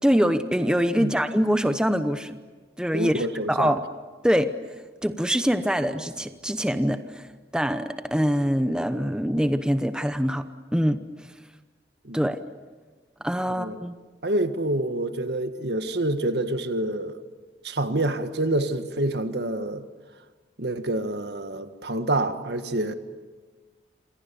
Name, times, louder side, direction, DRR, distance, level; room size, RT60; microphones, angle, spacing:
voice 1, 0.0-2.4 2.8-3.8 4.2-4.5 5.0-7.3 7.5-10.5 10.7-11.0 12.1-12.4 13.2-13.9, equal, 5° right, 0.8 m, -24 dB
voice 2, 2.9-3.8 12.0-12.3 13.6-13.8 14.2-17.2 17.6-19.9 20.6-22.9, right 1 dB, 70° right, 1.6 m, -27 dB
28.5 x 26.5 x 7.0 m
head